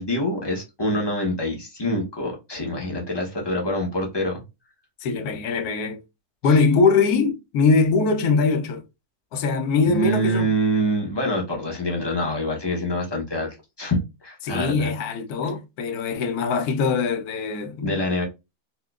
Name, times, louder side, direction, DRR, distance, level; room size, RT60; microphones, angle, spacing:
voice 1, 0.0-4.4 6.4-6.6 9.9-13.5 13.8-14.9 17.8-18.2, equal, 25° left, 0.5 m, -25 dB
voice 2, 5.0-6.0 6.4-8.8 9.3-10.5 14.4-18.0, left 4 dB, 70° left, 1.0 m, -22 dB
4.3 x 2.3 x 2.3 m
omnidirectional pair, 1.8 m